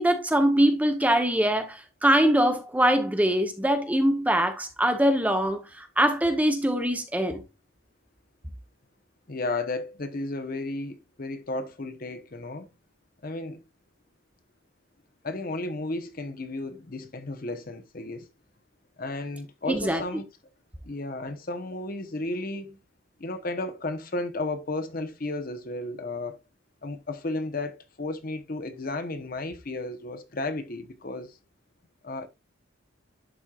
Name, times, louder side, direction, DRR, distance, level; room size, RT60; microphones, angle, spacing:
voice 1, 0.0-7.4 19.7-20.0, right 1 dB, 5° right, 0.8 m, -23 dB
voice 2, 9.3-12.7 13.2-13.6 15.2-18.3 19.0-20.2 20.8-22.8 23.2-26.4 26.8-31.4 32.0-32.3, left 2 dB, 45° left, 0.8 m, -33 dB
11.0 x 4.4 x 2.3 m
head